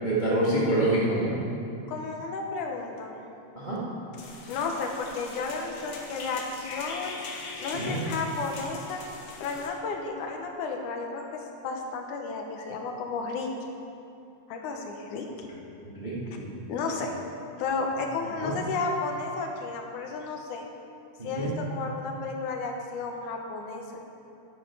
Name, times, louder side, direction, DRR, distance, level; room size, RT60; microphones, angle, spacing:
voice 1, 0.0-1.3 3.5-3.8 7.7-8.0 16.0-16.5 18.4-18.5 21.2-21.5, right 1 dB, 25° right, -7 dB, 1.1 m, -26 dB
voice 2, 1.9-3.2 4.5-7.2 7.6-9.0 9.4-13.5 14.5-15.5 16.7-17.1 17.6-20.6 21.2-23.8, left 4 dB, 80° left, 2 dB, 2.4 m, -33 dB
sound 1, 4.2-9.7, left 3 dB, 60° left, 2.0 m, -41 dB
10.5 x 9.1 x 4.8 m, 2.7 s
omnidirectional pair, 3.5 m